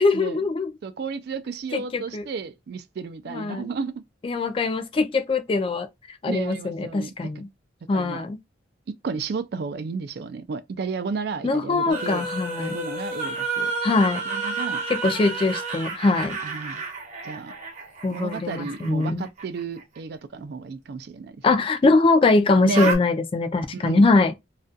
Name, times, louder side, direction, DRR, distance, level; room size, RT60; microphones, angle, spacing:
voice 1, 0.0-0.7 1.7-2.2 3.3-3.7 4.2-7.5 7.9-8.4 11.4-12.8 13.8-14.2 14.9-16.4 18.0-19.3 21.4-24.3, left 3 dB, 30° left, 0.3 m, -22 dB
voice 2, 0.8-3.9 6.3-7.1 7.9-8.2 9.0-12.2 12.6-13.7 14.3-14.8 16.4-16.8 17.2-17.5 18.1-21.6 22.6-22.9 23.7-24.0, right 4 dB, 55° right, 0.3 m, -32 dB
sound 1, 11.9-19.8 22.7-23.0, right 3 dB, 40° right, 0.8 m, -31 dB
2.4 x 2.2 x 2.5 m
head